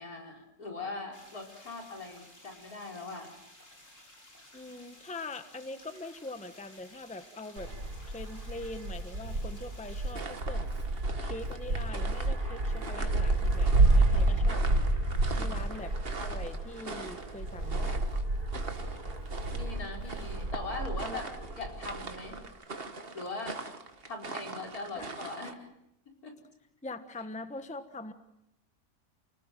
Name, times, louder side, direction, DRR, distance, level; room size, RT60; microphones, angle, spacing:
voice 1, 0.0-3.3 15.3-15.6 19.5-21.2 21.6-22.4 23.1-23.6 24.1-25.7 26.2-26.4, left 3 dB, 70° left, 2 dB, 5.0 m, -40 dB
sound 1, 1.1-10.1, left 1 dB, 55° left, 6.7 m, -55 dB
voice 2, 4.5-7.7 8.1-14.8 15.4-15.9 16.2-17.9 21.0-21.2 25.0-25.1 26.8-28.1, left 2 dB, 5° left, 9 dB, 1.2 m, -43 dB
Wind, 7.6-22.5, right 2 dB, 85° right, 5.4 m, -30 dB
sound 2, 10.1-25.5, right 3 dB, 40° right, 1.9 m, -43 dB
29.0 x 19.0 x 9.2 m, 0.83 s
omnidirectional pair, 1.6 m